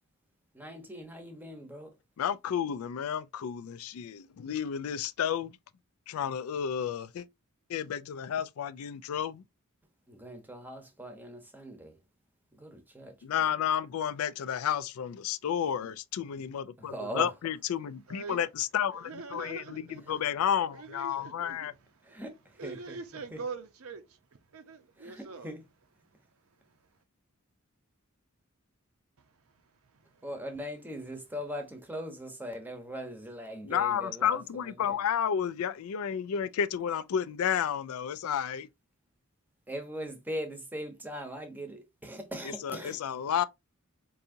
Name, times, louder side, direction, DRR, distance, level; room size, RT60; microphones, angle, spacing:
voice 1, 0.5-1.9 10.1-12.0 12.5-13.1 16.8-17.3 22.0-23.0 23.3-23.4 25.0-25.6 30.2-34.4 34.6-34.9 39.7-43.0, equal, 10° right, 0.8 m, -40 dB
voice 2, 2.2-5.6 6.1-7.3 7.7-9.4 13.2-21.7 33.6-38.7 42.4-43.4, left 8 dB, 75° left, 0.3 m, -31 dB
voice 3, 18.1-18.4 19.0-20.2 20.7-21.7 22.0-22.2 22.6-25.5 26.6-26.8 29.2-30.3, right 4 dB, 75° right, 0.7 m, -44 dB
4.6 x 2.7 x 2.6 m
head